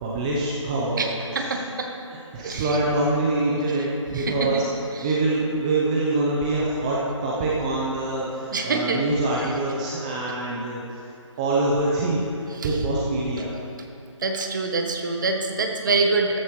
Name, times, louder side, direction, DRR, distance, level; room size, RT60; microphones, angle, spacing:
voice 1, 0.0-1.6 2.1-4.6 5.0-10.8 11.4-13.5, right 2 dB, 15° right, -5 dB, 0.7 m, -25 dB
voice 2, 1.0-1.9 2.4-2.8 3.8-3.9 4.1-4.6 4.9-5.2 8.5-9.0 9.4-9.5 12.5-12.9 14.2-16.4, right 3 dB, 40° right, 3 dB, 1.2 m, -26 dB
14.0 x 12.5 x 3.2 m, 2.8 s
figure-of-eight pair, 155°, 16 cm